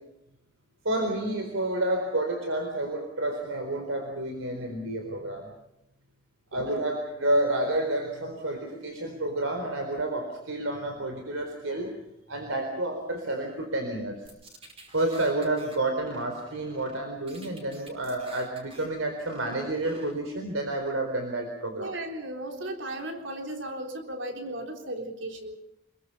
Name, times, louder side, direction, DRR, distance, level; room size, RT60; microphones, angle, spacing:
voice 1, 0.8-5.5 6.5-11.9 12.3-14.3 14.9-21.9, right 1 dB, 90° right, 4 dB, 4.2 m, -30 dB
sound 1, 14.3-15.8 16.1-17.0 17.3-18.9 19.2-20.1, right 1 dB, 30° right, 5.0 m, -48 dB
voice 2, 21.8-25.6, right 1 dB, 65° right, 3 dB, 3.9 m, -36 dB
27.0 x 22.5 x 5.7 m, 0.84 s
head